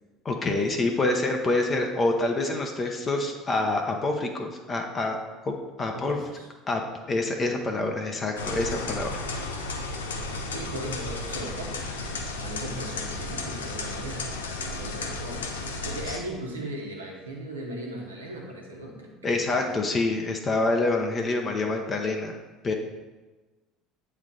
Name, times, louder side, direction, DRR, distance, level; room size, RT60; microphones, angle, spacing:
voice 1, 0.2-5.2 5.4-5.5 5.8-6.2 6.7-6.8 7.1-9.2 19.2-22.3 22.6-22.7, left 2 dB, 30° left, 2 dB, 0.8 m, -26 dB
voice 2, 5.8-6.5 10.3-11.9 12.3-14.3 14.6-19.9, right 1 dB, 90° right, -1 dB, 1.2 m, -38 dB
sound 1, 8.4-16.2, left 3 dB, 85° left, 0.6 m, -33 dB
8.2 x 3.2 x 3.9 m, 1.2 s
hypercardioid pair, 65°, 0 cm